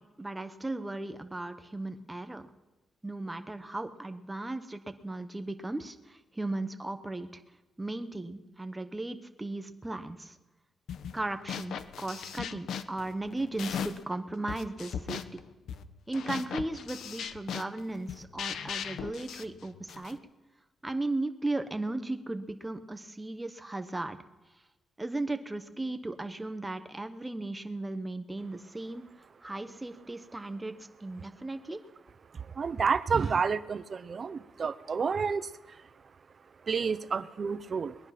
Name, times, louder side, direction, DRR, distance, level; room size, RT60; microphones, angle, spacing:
voice 1, 0.0-2.5 3.0-7.4 7.8-10.4 11.1-15.2 16.1-20.2 20.8-24.2 25.0-29.0 29.4-30.8 31.0-31.8, right 2 dB, 10° right, 8 dB, 1.0 m, -36 dB
sound 1, 10.9-11.2 11.5-14.1 14.5-20.2, left 8 dB, 65° left, 1.0 m, -38 dB
voice 2, 32.6-35.5 36.7-37.9, right 5 dB, 30° right, 15 dB, 0.6 m, -29 dB
22.0 x 20.5 x 5.9 m, 1.2 s
wide cardioid pair, 180°, 0 cm